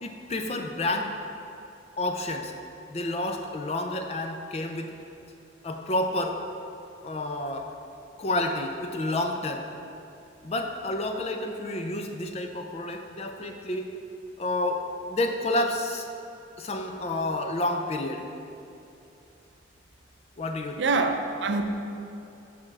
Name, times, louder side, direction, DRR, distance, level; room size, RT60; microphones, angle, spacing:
voice 1, 0.0-1.1 2.0-2.5 2.9-5.0 5.6-6.4 7.0-7.7 8.2-9.7 10.4-13.9 14.4-16.1 16.6-18.2 20.4-20.8, left 1 dB, 35° left, 4 dB, 0.4 m, -29 dB
voice 2, 20.8-21.6, right 3 dB, 65° right, 6 dB, 0.5 m, -25 dB
6.7 x 3.7 x 6.0 m, 2.8 s
head